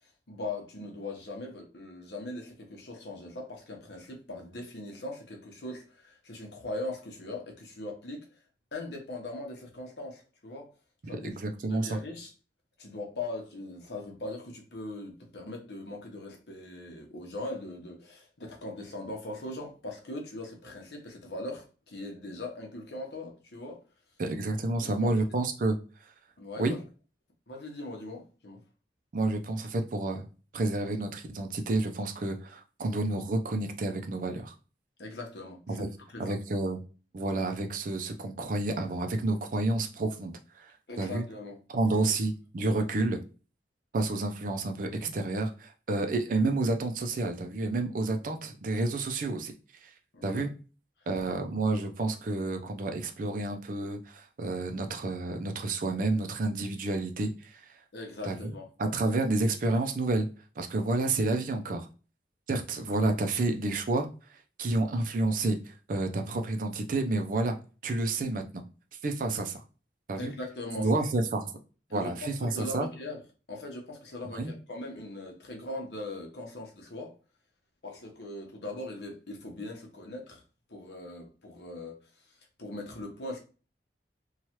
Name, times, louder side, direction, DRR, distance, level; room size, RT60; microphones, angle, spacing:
voice 1, 0.3-8.3 8.7-10.7 11.0-11.3 11.7-12.3 12.8-23.8 24.8-25.1 26.4-26.8 27.5-28.6 35.0-35.8 36.1-36.4 40.9-41.6 41.9-42.0 50.1-50.5 57.9-58.7 62.8-62.9 70.2-71.0 71.9-73.2 73.5-77.1 77.8-80.4 80.7-82.0 82.6-83.4, left 2 dB, 70° left, 0.8 m, -40 dB
voice 2, 11.1-12.0 24.2-25.8 26.6-26.8 29.1-30.3 30.5-34.5 35.7-35.9 36.2-36.8 37.1-40.7 41.0-41.2 41.7-43.2 43.9-49.5 49.8-49.9 50.2-50.5 51.1-57.7 58.2-58.5 58.8-60.3 60.6-61.9 62.5-64.1 64.6-67.6 67.8-68.6 69.0-69.6 70.1-70.3 70.8-71.5 71.9-72.9 74.3-74.5, right 2 dB, 50° right, 0.4 m, -30 dB
3.1 x 2.3 x 2.8 m
head